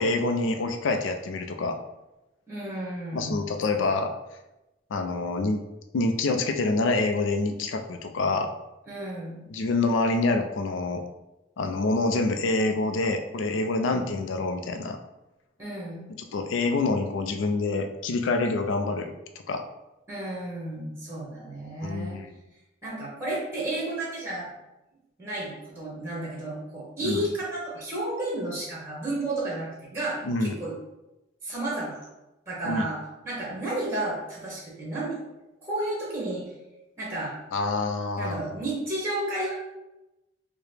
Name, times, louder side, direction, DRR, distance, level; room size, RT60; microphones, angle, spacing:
voice 1, 0.0-1.8 3.1-4.1 4.9-5.6 5.9-8.5 9.5-11.0 11.6-15.0 16.3-19.1 19.5-19.6 21.8-22.3 27.0-27.2 30.2-30.5 32.6-32.9 37.5-38.6, left 3 dB, 85° left, 6 dB, 0.4 m, -26 dB
voice 2, 2.5-3.4 8.9-9.4 13.9-14.1 15.6-16.0 20.1-22.2 22.8-24.5 25.2-30.7 31.4-32.0 32.5-33.0 33.2-35.2 35.6-36.5 37.0-37.3 38.1-39.5, right 1 dB, 15° right, -5 dB, 1.0 m, -32 dB
4.7 x 2.1 x 3.2 m, 0.97 s
head